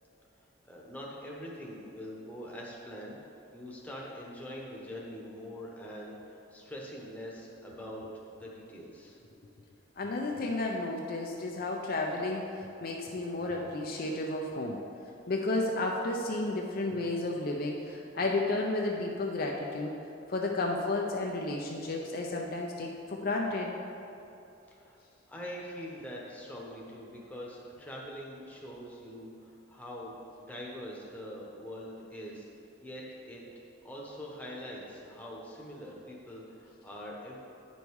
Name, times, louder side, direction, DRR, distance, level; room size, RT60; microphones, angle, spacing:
voice 1, 0.7-3.2 3.5-9.2 24.7-25.0 25.3-32.5 32.8-33.4 33.8-37.4, equal, 5° left, -4 dB, 1.0 m, -43 dB
voice 2, 10.0-14.8 15.3-19.9 20.3-23.7, left 2 dB, 45° left, 0 dB, 0.5 m, -32 dB
9.1 x 5.4 x 4.7 m, 2.8 s
head